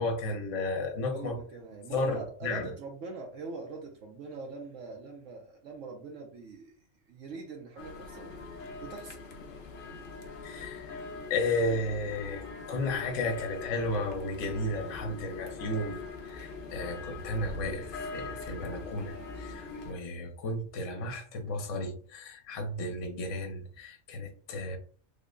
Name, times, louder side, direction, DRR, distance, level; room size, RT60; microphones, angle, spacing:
voice 1, 0.0-1.4 1.9-2.7 10.4-11.0 11.3-24.8, left 2 dB, 70° left, 1.1 m, -33 dB
voice 2, 1.1-6.7 7.1-8.3 8.8-9.3, right 4 dB, 70° right, 1.0 m, -42 dB
sound 1, 7.8-19.9, left 3 dB, 55° left, 0.7 m, -42 dB
3.6 x 2.1 x 3.6 m
omnidirectional pair, 1.4 m